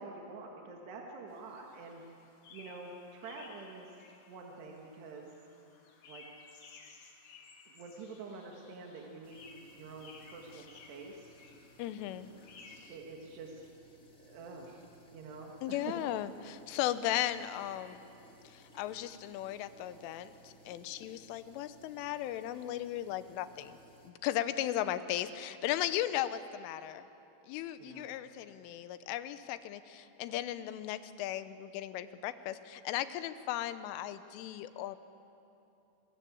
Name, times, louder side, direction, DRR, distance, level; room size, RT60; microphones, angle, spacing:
voice 1, 0.0-2.0 2.5-3.9 4.3-5.3 6.1-6.2 7.7-11.3 12.9-13.6 14.2-14.8 15.1-15.9 27.8-28.1, right 4 dB, 65° right, 0 dB, 3.6 m, -47 dB
sound 1, 1.3-13.0, left 4 dB, 50° left, 3.0 m, -57 dB
sound 2, 9.2-24.1, equal, 35° left, 1.3 m, -60 dB
voice 2, 11.8-12.3 15.6-18.0 18.4-23.8 24.0-27.0 27.5-35.0, left 12 dB, 90° left, 12 dB, 3.4 m, -36 dB
26.5 x 21.0 x 8.6 m, 2.8 s
omnidirectional pair, 5.6 m